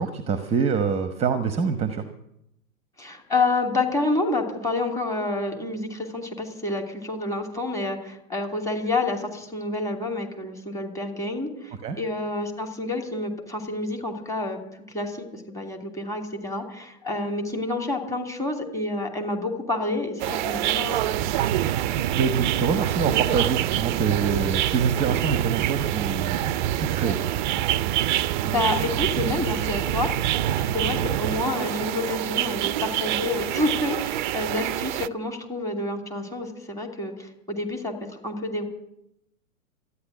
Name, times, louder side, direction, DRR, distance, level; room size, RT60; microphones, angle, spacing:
voice 1, 0.0-2.0 11.8-12.0 21.9-27.2, right 5 dB, 15° right, 9 dB, 1.0 m, -26 dB
voice 2, 3.0-14.6 14.9-21.2 28.4-38.7, left 2 dB, 5° left, 2 dB, 2.9 m, -28 dB
sound 1, 20.2-35.1, right 12 dB, 35° right, 0.5 m, -26 dB
13.5 x 10.0 x 10.0 m, 0.82 s
figure-of-eight pair, 105°, 42 cm